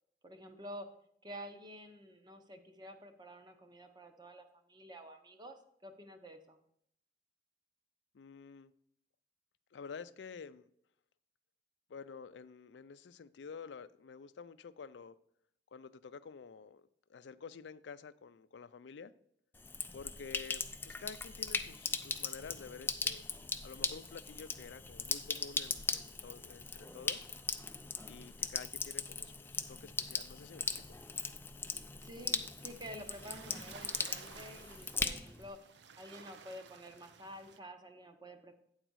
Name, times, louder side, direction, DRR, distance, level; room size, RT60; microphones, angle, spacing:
voice 1, 0.2-0.9 1.2-6.6 32.0-38.5, equal, 25° right, 7 dB, 0.8 m, -50 dB
voice 2, 8.1-8.7 9.7-10.7 11.9-15.2 15.7-19.1 19.9-23.2 23.6-27.3 28.1-30.8 32.2-32.5, left 5 dB, 75° left, 15 dB, 0.4 m, -50 dB
Sink (filling or washing), 19.5-35.5, left 4 dB, 10° left, 0.4 m, -39 dB
sound 1, 32.6-37.6, right 6 dB, 80° right, 0.6 m, -55 dB
9.0 x 4.0 x 6.2 m, 0.71 s
head